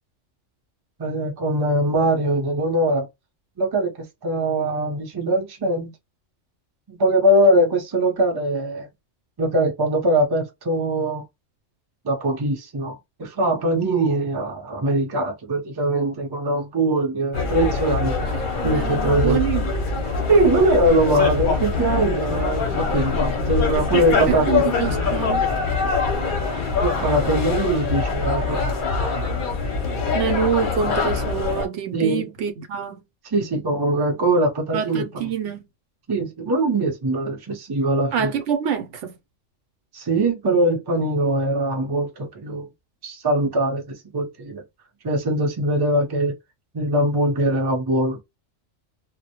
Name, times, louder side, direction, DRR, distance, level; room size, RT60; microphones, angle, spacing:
voice 1, 1.0-3.1 3.6-3.9 4.2-5.9 6.9-8.9 9.4-11.2 12.0-18.2 18.6-19.4 20.3-24.7 26.8-28.6 31.9-32.3 33.3-35.0 36.1-38.3 39.9-42.7 43.0-44.6 45.0-46.4 46.7-48.2, right 1 dB, 30° right, 0.5 m, -22 dB
sound 1, 17.3-31.7, left 4 dB, 50° left, 0.7 m, -23 dB
voice 2, 18.3-19.7 24.3-25.5 30.1-33.0 34.7-35.7 38.1-39.1, right 8 dB, 70° right, 0.9 m, -26 dB
2.1 x 2.1 x 2.8 m
omnidirectional pair, 1.3 m